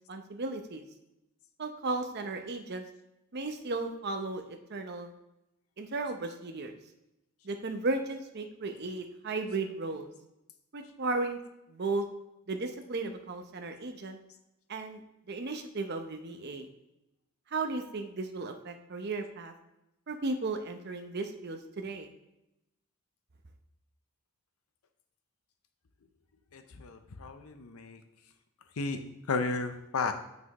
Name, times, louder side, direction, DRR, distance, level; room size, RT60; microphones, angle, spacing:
voice 1, 0.1-0.8 1.6-2.8 3.3-5.1 5.8-6.7 7.4-10.1 10.7-11.4 11.7-12.0 12.5-14.2 14.7-15.0 15.3-16.7 17.5-19.5 20.1-22.1, right 3 dB, 45° right, 6 dB, 0.7 m, -35 dB
voice 2, 26.5-28.0 28.8-29.0 29.3-30.1, left 4 dB, 70° left, 8 dB, 0.6 m, -33 dB
7.4 x 6.2 x 3.0 m, 0.90 s
head